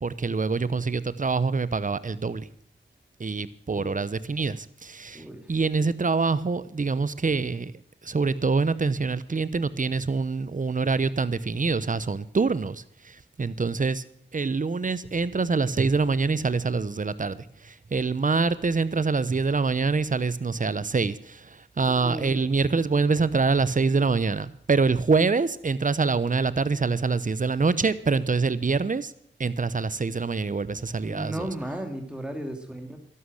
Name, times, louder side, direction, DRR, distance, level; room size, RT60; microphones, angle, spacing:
voice 1, 0.0-2.5 3.2-7.7 8.0-14.0 14.3-29.1 29.4-31.5, right 4 dB, 40° right, 16 dB, 0.9 m, -25 dB
voice 2, 5.1-5.5 21.9-22.3 31.0-33.0, right 1 dB, 5° right, 4 dB, 2.5 m, -35 dB
12.5 x 11.5 x 6.6 m, 0.63 s
cardioid pair, 45°, 20 cm